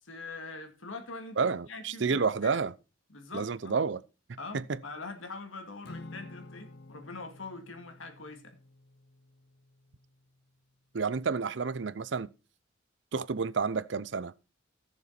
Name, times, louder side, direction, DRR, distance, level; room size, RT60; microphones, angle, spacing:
voice 1, 0.0-2.6 3.1-3.8 4.4-8.6, left 3 dB, 90° left, 2.3 m, -43 dB
voice 2, 1.4-2.7 3.3-4.0 4.5-4.8 10.9-12.3 13.1-14.3, right 5 dB, 65° right, 0.6 m, -30 dB
Acoustic guitar / Strum, 5.8-10.3, left 2 dB, 55° left, 0.7 m, -50 dB
15.0 x 6.9 x 4.3 m
head